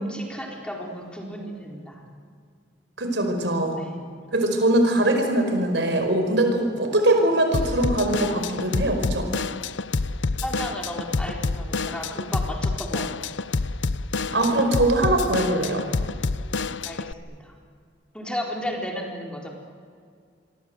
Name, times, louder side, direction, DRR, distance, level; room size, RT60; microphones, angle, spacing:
voice 1, 0.0-2.0 3.8-3.9 10.4-13.3 16.9-17.5 18.1-19.5, equal, 5° left, 0 dB, 4.1 m, -33 dB
voice 2, 3.0-3.8 4.3-9.3 14.3-15.9, right 1 dB, 75° right, 5 dB, 5.0 m, -22 dB
Drum kit / Drum, 7.5-17.1, left 3 dB, 80° left, 0.7 m, -28 dB
27.5 x 23.5 x 7.9 m, 2.2 s
head